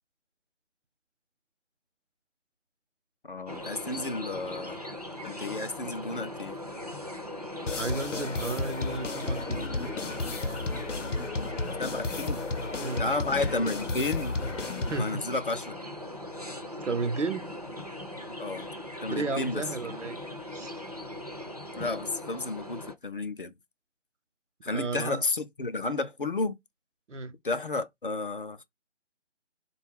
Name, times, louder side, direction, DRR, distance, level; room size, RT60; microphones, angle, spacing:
voice 1, 3.2-4.8 5.2-6.6 11.8-12.4 13.0-14.4 15.0-15.7 18.4-18.7 19.0-19.6 21.8-23.5 24.6-26.6 27.4-28.7, left 3 dB, 45° left, 0.5 m, -32 dB
sound 1, 3.5-22.9, left 1 dB, 35° right, 0.4 m, -40 dB
sound 2, 7.7-15.1, left 3 dB, 85° left, 0.7 m, -33 dB
voice 2, 7.7-10.0 12.8-13.1 14.9-15.3 16.8-17.5 19.1-20.2 20.5-20.8 24.6-25.2 27.1-27.4, right 3 dB, 80° right, 0.7 m, -33 dB
3.9 x 2.2 x 3.4 m
figure-of-eight pair, 155°, 36 cm